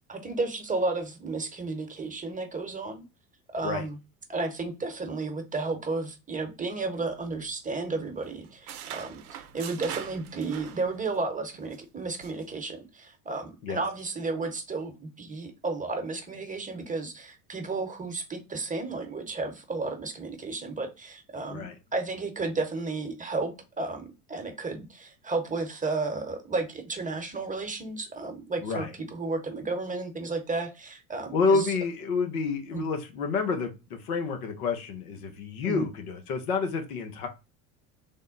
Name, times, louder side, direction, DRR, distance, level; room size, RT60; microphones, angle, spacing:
voice 1, 0.1-3.0 3.5-4.0 4.3-31.7 32.7-32.9 35.6-35.9, right 3 dB, 20° right, 6 dB, 0.9 m, -33 dB
sound 1, 7.1-8.0 8.2-11.2 11.5-11.8 12.2-12.5, right 10 dB, 90° right, 0.5 m, -42 dB
voice 2, 31.3-37.3, left 4 dB, 85° left, 6 dB, 0.9 m, -29 dB
3.5 x 2.1 x 3.8 m, 0.27 s
hypercardioid pair, 75°, 43 cm